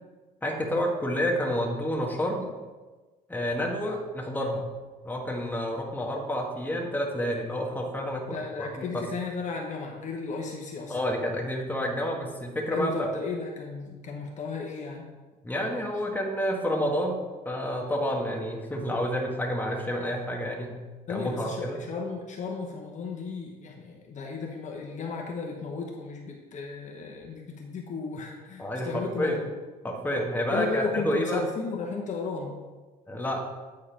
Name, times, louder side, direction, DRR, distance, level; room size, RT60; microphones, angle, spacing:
voice 1, 0.4-2.5 3.3-4.7 5.0-9.0 10.9-13.1 15.4-20.8 21.1-21.8 28.6-29.4 29.8-31.4 33.1-33.4, equal, 10° left, -1 dB, 1.4 m, -29 dB
voice 2, 8.3-11.0 12.7-15.1 21.1-29.5 30.5-32.6, left 4 dB, 45° left, 0 dB, 1.0 m, -34 dB
8.7 x 3.9 x 5.1 m, 1.3 s
cardioid pair, 110°, 17 cm